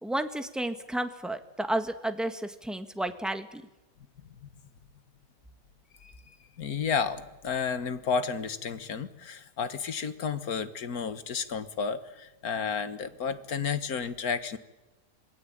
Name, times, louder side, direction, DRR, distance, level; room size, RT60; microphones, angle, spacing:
voice 1, 0.0-3.6, right 1 dB, ahead, 8 dB, 1.5 m, -32 dB
voice 2, 6.6-14.6, left 6 dB, 60° left, 11 dB, 1.9 m, -32 dB
27.0 x 20.5 x 9.0 m, 1.0 s
omnidirectional pair, 1.8 m